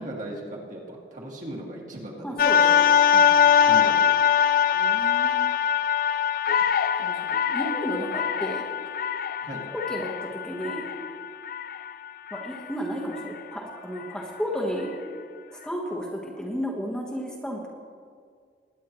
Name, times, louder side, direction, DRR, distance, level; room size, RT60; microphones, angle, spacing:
voice 1, 0.0-2.8 3.6-3.9 9.4-9.6, right 1 dB, 45° right, -2 dB, 2.2 m, -37 dB
voice 2, 2.2-3.8 4.7-5.5 7.0-8.6 9.7-10.8 12.3-14.9 15.5-17.7, equal, 5° left, -2 dB, 1.2 m, -33 dB
sound 1, 2.4-12.6 13.2-13.3, left 8 dB, 55° left, 0.4 m, -22 dB
21.5 x 9.2 x 3.1 m, 2.1 s
head